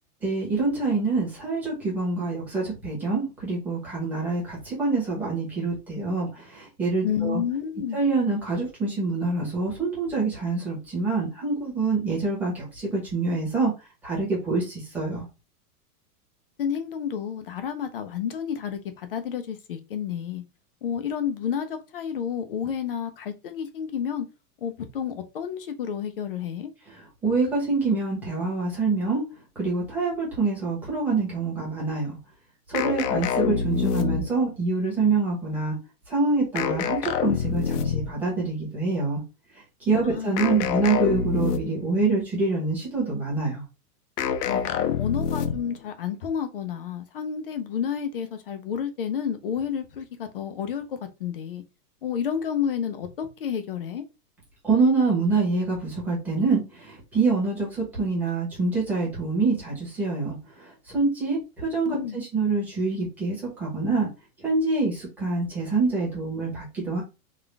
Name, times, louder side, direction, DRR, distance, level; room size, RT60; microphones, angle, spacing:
voice 1, 0.2-7.4 7.9-13.7 14.0-15.3 26.9-29.2 29.6-32.1 32.7-35.7 36.1-39.2 39.8-43.6 54.6-60.4 60.9-64.1 64.4-67.0, right 3 dB, 5° right, 1.1 m, -26 dB
voice 2, 7.0-8.0 16.6-20.4 20.8-24.3 24.6-26.7 40.1-40.4 40.7-40.8 44.5-51.6 52.0-54.0 61.9-62.2, left 8 dB, 40° left, 0.4 m, -30 dB
sound 1, 32.7-34.5 36.6-38.2 40.4-41.9 44.2-45.8, left 7 dB, 80° left, 0.7 m, -26 dB
3.8 x 2.4 x 3.3 m
supercardioid pair, 170°, 46 cm